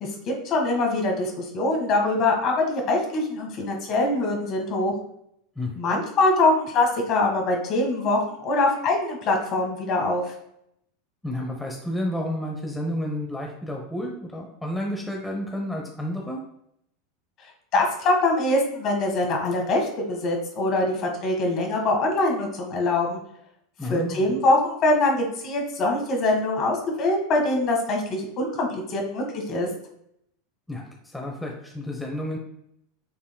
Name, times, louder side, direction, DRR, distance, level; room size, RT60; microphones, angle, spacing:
voice 1, 0.0-4.9 5.7-10.3 17.7-23.2 23.9-29.7, left 2 dB, 45° left, 2 dB, 1.5 m, -23 dB
voice 2, 5.6-6.0 11.2-16.4 23.8-24.3 30.7-32.4, left 1 dB, 10° left, 0 dB, 0.9 m, -31 dB
6.5 x 3.6 x 2.2 m, 0.74 s
hypercardioid pair, 95°, 0 cm